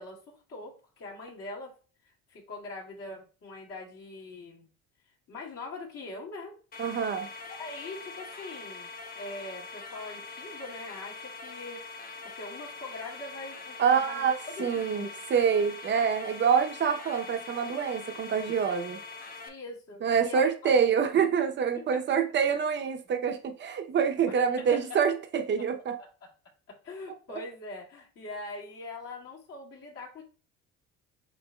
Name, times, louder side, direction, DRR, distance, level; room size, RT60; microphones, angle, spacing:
voice 1, 0.0-1.7 2.3-4.7 5.3-6.5 7.6-11.8 12.3-15.1 19.4-20.8 21.7-22.0 24.3-25.0 26.2-26.3 26.8-30.2, left 2 dB, 55° left, 2.3 m, -42 dB
sound 1, 6.7-19.5, left 3 dB, 30° left, 0.8 m, -43 dB
voice 2, 6.8-7.3 13.8-19.0 20.0-26.0 27.3-27.4, right 7 dB, 40° right, 0.7 m, -26 dB
7.5 x 2.6 x 2.3 m
cardioid pair, 105°, 29 cm